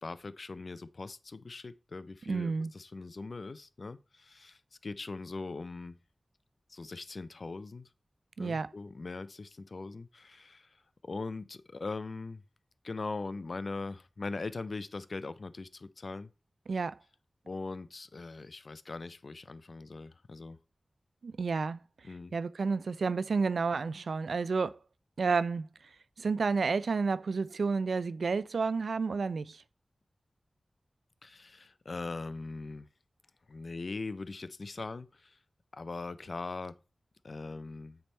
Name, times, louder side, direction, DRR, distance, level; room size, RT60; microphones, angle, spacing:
voice 1, 0.0-6.0 6.7-7.9 8.4-10.7 11.0-12.4 12.8-16.3 17.5-20.6 22.0-22.3 31.2-32.9 33.5-35.4 35.7-36.8 37.2-38.0, left 3 dB, 60° left, 0.4 m, -41 dB
voice 2, 2.3-2.7 8.4-8.7 16.7-17.0 21.2-21.8 22.3-24.8 25.2-25.7 26.2-29.6, right 4 dB, 85° right, 0.3 m, -30 dB
7.9 x 3.4 x 4.3 m
wide cardioid pair, 75°, 0 cm